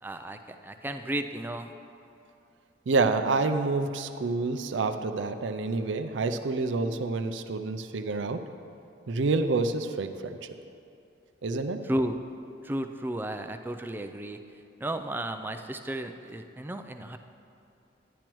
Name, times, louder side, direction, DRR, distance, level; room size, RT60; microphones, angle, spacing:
voice 1, 0.0-1.7 11.8-12.2 12.6-14.4 14.8-17.2, right 1 dB, 10° right, 7 dB, 0.3 m, -33 dB
voice 2, 2.9-8.4 9.1-10.4 11.4-11.8, right 3 dB, 80° right, 9 dB, 0.5 m, -28 dB
12.0 x 10.0 x 3.0 m, 2.6 s
head